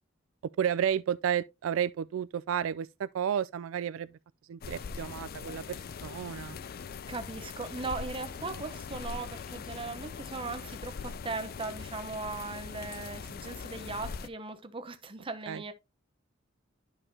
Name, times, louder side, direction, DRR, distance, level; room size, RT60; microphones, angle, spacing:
voice 1, 0.6-4.1 4.5-6.6 15.5-15.6, right 9 dB, 90° right, 0.3 m, -32 dB
sound 1, 4.6-14.3, left 5 dB, 50° left, 0.4 m, -41 dB
voice 2, 7.1-15.7, right 3 dB, 25° right, 0.8 m, -38 dB
11.0 x 4.9 x 2.7 m
head